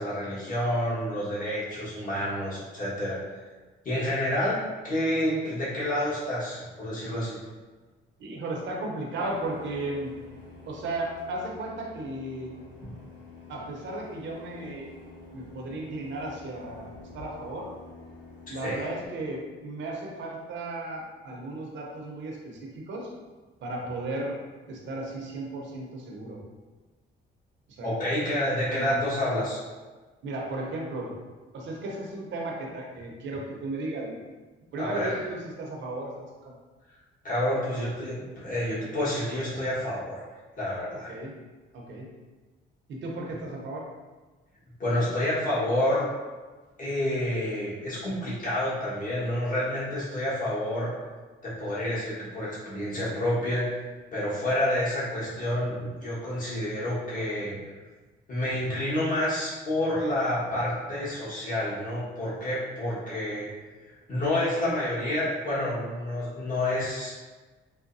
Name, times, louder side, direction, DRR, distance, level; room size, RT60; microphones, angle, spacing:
voice 1, 0.0-3.2 3.8-7.4 18.6-18.9 27.8-29.6 34.8-35.2 37.2-40.2 40.6-41.1 44.8-46.1 46.8-50.9 51.4-53.8 54.1-57.6 58.3-63.5 63.8-67.2, left 1 dB, 40° left, -8 dB, 1.4 m, -29 dB
voice 2, 8.2-10.1 10.7-12.6 13.5-14.9 15.3-17.7 18.5-23.1 23.6-24.4 24.7-26.4 27.7-27.9 28.7-28.9 30.2-31.1 31.5-34.2 34.7-36.5 41.1-41.3 41.7-42.1 42.9-43.8, right 2 dB, 70° right, -1 dB, 0.8 m, -35 dB
sound 1, 9.2-19.1, left 3 dB, 70° left, 1.2 m, -48 dB
4.9 x 2.2 x 2.6 m, 1.3 s
cardioid pair, 90°, 20 cm